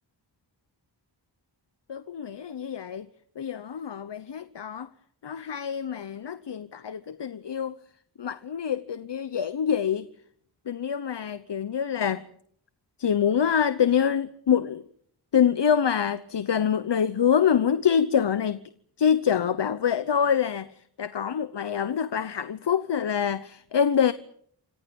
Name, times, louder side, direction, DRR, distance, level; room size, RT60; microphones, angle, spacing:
voice 1, 1.9-3.1 3.4-4.9 5.2-7.8 8.2-10.1 10.7-12.3 13.0-14.8 15.3-18.6 19.0-24.1, left 8 dB, 70° left, 1.0 m, -25 dB
29.5 x 26.0 x 5.4 m
wide cardioid pair, 55°, 43 cm